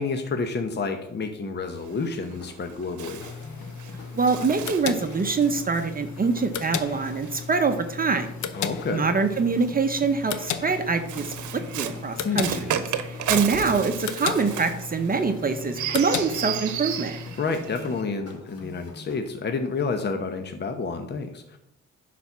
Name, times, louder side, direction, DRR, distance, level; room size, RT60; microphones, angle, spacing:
voice 1, 0.0-3.2 8.5-9.1 12.2-12.6 17.4-21.6, left 4 dB, 35° left, 6 dB, 1.0 m, -29 dB
Bird, 1.7-8.3 9.2-18.0, right 10 dB, 75° right, 0.9 m, -35 dB
sound 1, 1.9-19.3, left 3 dB, 50° left, 2.0 m, -46 dB
sound 2, 3.2-17.4, left 7 dB, 70° left, 0.8 m, -36 dB
voice 2, 4.1-8.3 8.9-11.3 11.7-12.7 13.3-17.2, right 4 dB, 30° right, 6 dB, 0.9 m, -24 dB
10.0 x 4.3 x 6.0 m, 0.81 s
cardioid pair, 90°, 30 cm